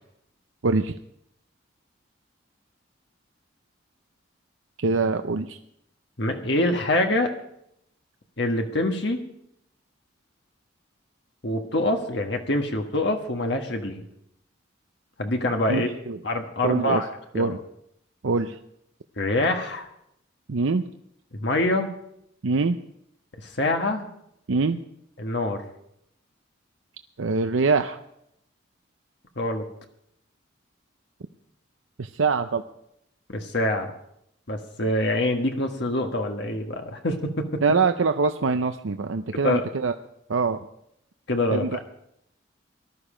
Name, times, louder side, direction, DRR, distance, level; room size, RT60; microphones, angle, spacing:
voice 1, 0.6-0.9 4.8-5.6 15.7-16.2 16.6-17.0 17.3-17.6 18.2-18.6 20.5-20.8 22.4-22.8 24.5-24.8 27.2-28.0 32.0-32.6 37.6-39.9 40.3-40.6 41.5-41.7, right 4 dB, 80° right, 7 dB, 0.6 m, -24 dB
voice 2, 6.2-7.3 8.4-9.2 11.4-14.0 15.2-15.9 16.2-17.1 17.3-17.5 19.2-19.9 21.3-21.9 23.4-24.1 25.2-25.6 29.4-29.6 33.3-33.9 34.5-37.6 39.3-39.7 41.3-41.8, left 1 dB, 60° left, 4 dB, 1.5 m, -25 dB
19.0 x 12.5 x 5.0 m, 0.77 s
head